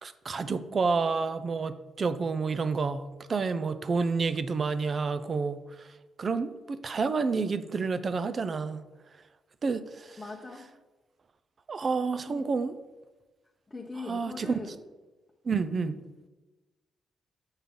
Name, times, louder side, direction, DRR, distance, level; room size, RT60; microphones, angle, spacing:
voice 1, 0.0-5.9 6.2-8.8 9.6-10.2 11.7-12.7 14.1-14.5 15.4-15.9, right 4 dB, 45° right, 0.5 m, -29 dB
voice 2, 10.2-10.7 12.3-12.5 13.7-14.8 15.7-15.9, left 3 dB, 20° left, 0.8 m, -41 dB
7.1 x 5.6 x 3.7 m
cardioid pair, 90°, 0 cm